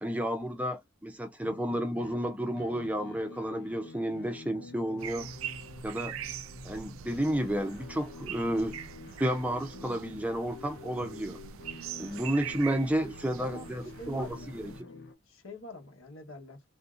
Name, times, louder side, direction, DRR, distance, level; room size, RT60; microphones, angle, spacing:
voice 1, 0.0-5.3 5.8-6.2 6.6-8.8 9.2-11.4 12.0-14.7, right 1 dB, 5° right, 0.4 m, -31 dB
sound 1, 1.4-15.1, left 3 dB, 55° left, 0.7 m, -48 dB
sound 2, 5.0-14.8, right 9 dB, 80° right, 0.4 m, -43 dB
voice 2, 13.4-16.6, left 1 dB, 80° left, 1.1 m, -47 dB
3.5 x 2.7 x 2.4 m
head